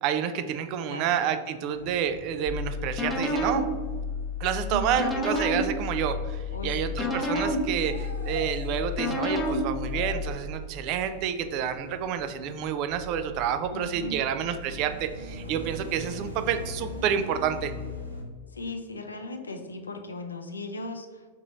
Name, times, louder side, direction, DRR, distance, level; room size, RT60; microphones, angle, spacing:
voice 1, 0.0-3.7 4.4-17.7, right 8 dB, 40° right, 10 dB, 0.3 m, -29 dB
sound 1, 1.7-18.2, equal, 85° right, 0.7 m, -42 dB
sound 2, 2.5-10.3, left 2 dB, 15° left, 0.6 m, -30 dB
voice 2, 4.7-5.1 6.5-7.0 13.7-14.2 18.5-21.3, left 2 dB, 75° left, 6 dB, 0.4 m, -37 dB
3.5 x 3.0 x 4.1 m, 1.5 s
figure-of-eight pair, 90°, 0 cm